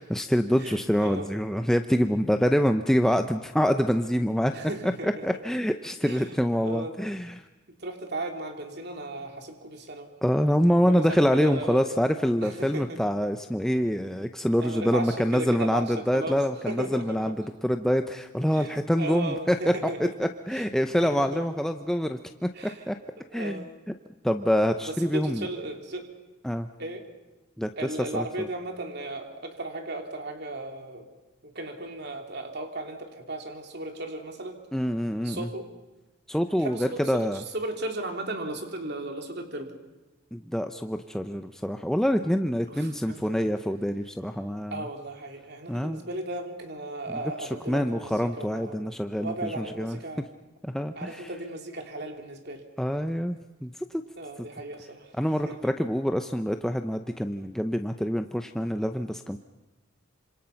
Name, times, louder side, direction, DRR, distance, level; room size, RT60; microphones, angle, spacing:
voice 1, 0.0-4.5 4.8-7.4 10.2-17.4 17.6-19.7 20.0-23.0 23.3-23.6 24.2-25.5 26.4-26.7 27.6-27.7 28.1-28.5 34.7-35.5 36.3-37.4 40.3-44.8 45.7-46.0 47.4-50.0 50.6-51.2 52.8-54.0 55.2-59.4, equal, ahead, 6 dB, 0.7 m, -26 dB
voice 2, 0.6-1.3 4.5-5.2 6.0-6.3 6.6-6.9 7.7-10.1 10.9-11.9 12.4-13.0 14.6-17.3 18.5-20.6 21.0-21.4 22.5-22.8 23.3-23.7 24.8-26.1 26.8-27.1 27.8-31.1 31.4-34.6 35.2-35.7 36.6-39.7 42.7-43.5 44.7-48.8 49.2-50.2 50.9-52.6 54.1-55.6, right 2 dB, 50° right, 4 dB, 3.2 m, -36 dB
26.5 x 26.5 x 5.9 m, 1.1 s
head